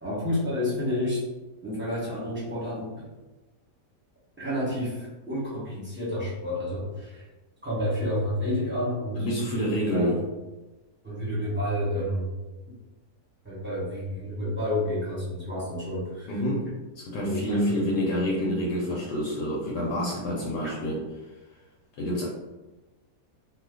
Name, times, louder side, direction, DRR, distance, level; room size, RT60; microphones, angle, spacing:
voice 1, 0.0-1.2 1.6-2.9 4.4-7.2 7.6-10.2 11.0-12.3 13.4-16.3 17.2-17.8, left 1 dB, 10° right, -9 dB, 0.8 m, -30 dB
voice 2, 9.2-10.2 16.3-16.6 17.0-21.0 22.0-22.2, equal, 80° left, -3 dB, 1.2 m, -27 dB
2.8 x 2.2 x 3.5 m, 1.1 s
omnidirectional pair, 1.8 m